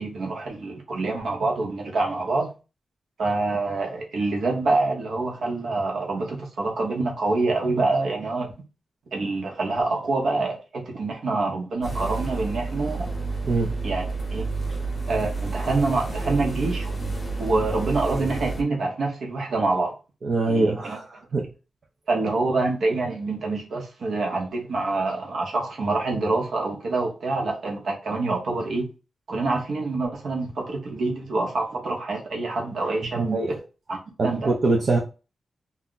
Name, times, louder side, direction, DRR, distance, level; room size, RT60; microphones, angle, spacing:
voice 1, 0.0-2.5 3.2-8.5 9.1-13.1 13.6-14.0 14.3-14.5 15.1-16.9 17.4-19.9 20.5-21.0 22.1-28.9 29.3-33.6 33.9-34.0 34.2-34.5, right 3 dB, 65° right, 0.8 m, -26 dB
sound 1, 11.8-18.6, right 3 dB, 25° left, 0.7 m, -30 dB
voice 2, 13.4-13.7 14.7-14.8 20.2-21.5 33.1-33.5 34.2-35.0, right 3 dB, 40° right, 0.4 m, -23 dB
2.3 x 2.1 x 3.7 m
wide cardioid pair, 180°, 0 cm